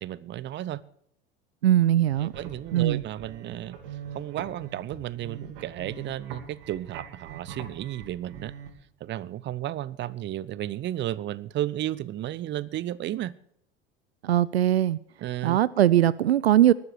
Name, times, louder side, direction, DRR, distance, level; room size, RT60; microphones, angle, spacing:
voice 1, 0.0-0.8 2.2-3.8 4.1-8.5 9.0-13.3 15.2-15.6, right 13 dB, 35° right, 0.8 m, -33 dB
voice 2, 1.6-2.3 2.7-3.0 14.2-15.0 15.4-16.7, right 12 dB, 80° right, 0.5 m, -20 dB
sound 1, 2.0-8.7, right 8 dB, 65° right, 3.0 m, -43 dB
19.5 x 12.5 x 4.7 m
figure-of-eight pair, 75°, 31 cm